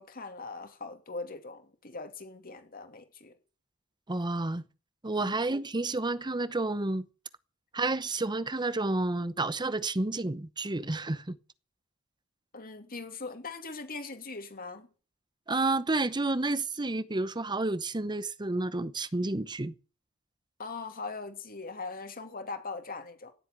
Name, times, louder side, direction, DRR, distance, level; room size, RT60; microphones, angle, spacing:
voice 1, 0.0-3.3 5.2-5.4 12.5-14.9 20.6-23.3, left 3 dB, 45° left, 2.8 m, -41 dB
voice 2, 4.1-4.6 5.0-7.1 7.7-11.4 15.5-19.7, right 2 dB, 20° right, 0.8 m, -30 dB
17.5 x 7.9 x 9.4 m
head